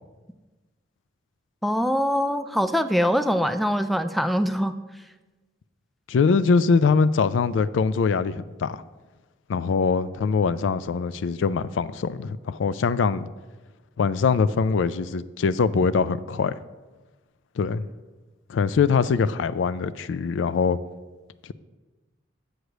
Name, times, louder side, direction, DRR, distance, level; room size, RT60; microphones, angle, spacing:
voice 1, 1.6-4.8, equal, ahead, 10 dB, 0.3 m, -23 dB
voice 2, 6.1-8.8 9.5-13.3 14.0-16.6 17.6-17.9 18.5-20.8, left 5 dB, 75° left, 16 dB, 0.3 m, -23 dB
8.0 x 4.8 x 6.3 m, 1.2 s
head